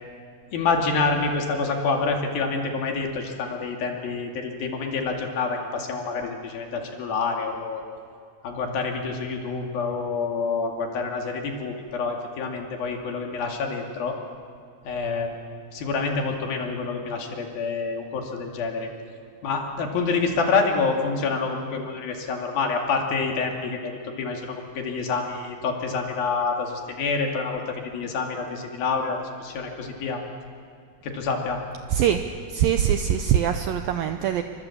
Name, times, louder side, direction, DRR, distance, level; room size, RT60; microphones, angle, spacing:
voice 1, 0.5-7.8 8.4-14.2 14.9-15.3 15.7-18.9 19.4-30.2 31.0-31.6, left 4 dB, 60° left, 2 dB, 4.1 m, -27 dB
voice 2, 31.9-32.2 32.5-34.4, right 9 dB, 75° right, 7 dB, 2.2 m, -22 dB
29.0 x 24.0 x 7.3 m, 2.3 s
omnidirectional pair, 4.8 m